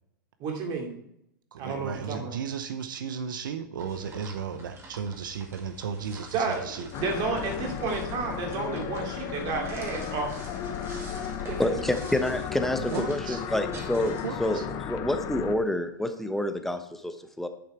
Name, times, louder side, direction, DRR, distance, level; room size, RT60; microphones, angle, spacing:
voice 1, 0.4-0.9 1.6-2.4 6.3-10.3 11.5-11.6, right 4 dB, 40° right, 2 dB, 2.8 m, -31 dB
voice 2, 1.5-6.9 12.8-13.4 14.2-14.6, right 7 dB, 75° right, 9 dB, 0.7 m, -35 dB
sound 1, 3.8-14.7, right 2 dB, 25° right, 2.1 m, -47 dB
sound 2, 6.9-15.6, left 8 dB, 35° left, 1.0 m, -35 dB
voice 3, 11.4-17.5, left 1 dB, 5° left, 7 dB, 1.0 m, -28 dB
10.5 x 5.7 x 4.5 m, 0.77 s
hypercardioid pair, 110°, 11 cm